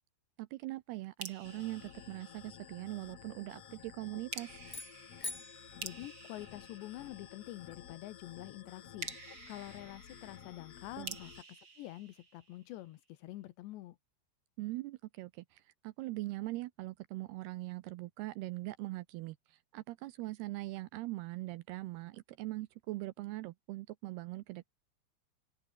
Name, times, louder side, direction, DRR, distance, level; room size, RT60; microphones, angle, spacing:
voice 1, 0.4-4.5 11.0-11.2 14.6-24.7, right 19 dB, 80° right, 2.4 m, -41 dB
sound 1, 1.2-2.9 4.3-7.6 9.0-12.9, right 5 dB, 30° right, 3.1 m, -49 dB
sound 2, 1.4-11.4, left 9 dB, 55° left, 1.9 m, -53 dB
sound 3, 4.6-7.0, left 2 dB, 15° left, 1.5 m, -46 dB
voice 2, 5.8-9.1 9.5-11.3 11.8-14.0, left 16 dB, 80° left, 3.2 m, -47 dB
open air
omnidirectional pair, 5.2 m